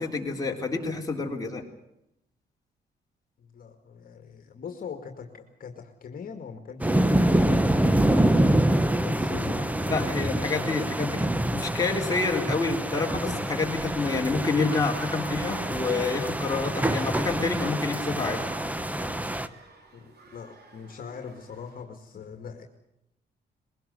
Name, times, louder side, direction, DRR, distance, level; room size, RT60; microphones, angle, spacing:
voice 1, 0.0-1.6 9.9-18.5, left 3 dB, 20° left, 0 dB, 3.7 m, -28 dB
voice 2, 3.4-8.5 9.0-10.7 19.9-20.1 20.3-22.6, left 6 dB, 55° left, 5 dB, 2.2 m, -42 dB
sound 1, 6.8-19.5, right 1 dB, 10° right, 1.1 m, -26 dB
sound 2, 13.5-21.8, right 3 dB, 65° right, 4.7 m, -48 dB
21.5 x 18.0 x 8.1 m, 0.83 s
cardioid pair, 105°, 18 cm